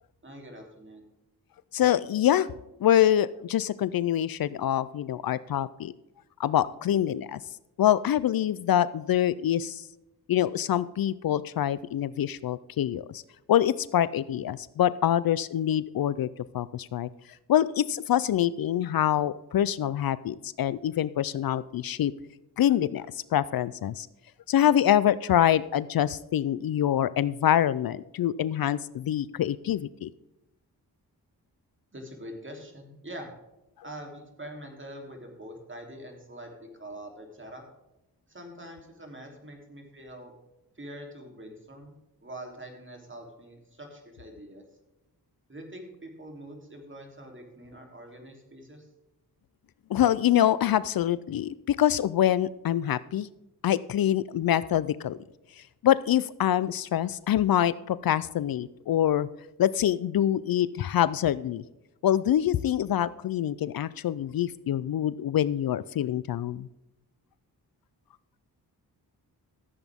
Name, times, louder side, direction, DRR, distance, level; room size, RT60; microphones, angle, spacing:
voice 1, 0.2-1.1 31.9-33.3 33.8-37.6 38.3-40.3 40.7-41.9 42.2-44.6 45.5-48.9, right 1 dB, 30° right, 2 dB, 3.2 m, -44 dB
voice 2, 1.7-2.5 2.8-5.9 6.4-7.4 7.8-9.8 10.3-13.2 13.5-16.3 16.5-17.1 17.5-22.1 22.6-24.1 24.5-30.1 49.9-53.3 53.6-55.2 55.8-59.3 59.6-61.6 62.0-66.7, left 11 dB, 65° left, 18 dB, 0.5 m, -25 dB
14.5 x 8.1 x 3.6 m, 0.95 s
cardioid pair, 70°, 39 cm